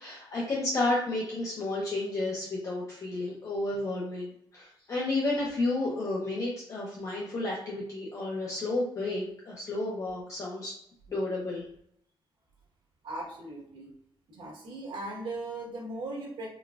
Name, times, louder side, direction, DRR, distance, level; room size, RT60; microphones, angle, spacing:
voice 1, 0.0-10.8 11.1-11.6, left 2 dB, 35° left, -4 dB, 0.6 m, -31 dB
voice 2, 13.0-13.9 14.3-16.5, right 2 dB, 65° right, -1 dB, 1.0 m, -38 dB
3.9 x 2.2 x 2.3 m, 0.71 s
wide cardioid pair, 175°, 9 cm